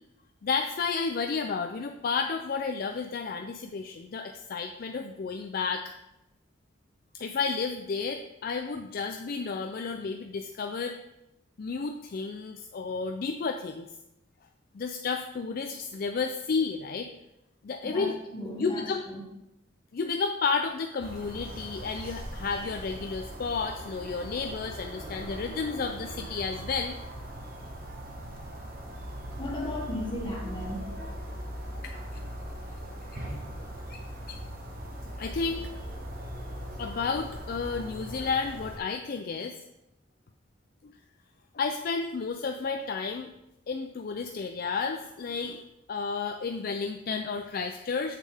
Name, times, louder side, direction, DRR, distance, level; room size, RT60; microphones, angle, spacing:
voice 1, 0.4-5.8 7.1-11.0 11.6-13.9 14.7-17.1 17.6-18.2 18.6-19.0 19.9-27.3 31.8-32.2 33.9-34.0 34.3-34.4 35.2-35.6 36.8-39.5 40.8-40.9 41.5-43.3 43.7-45.6 45.9-48.2, left 5 dB, 50° left, 5 dB, 0.4 m, -32 dB
voice 2, 18.3-19.2 29.3-31.1, left 1 dB, 25° left, -4 dB, 1.9 m, -36 dB
sound 1, 21.0-38.8, equal, 50° right, 1.2 m, -40 dB
7.5 x 6.2 x 3.4 m, 0.89 s
head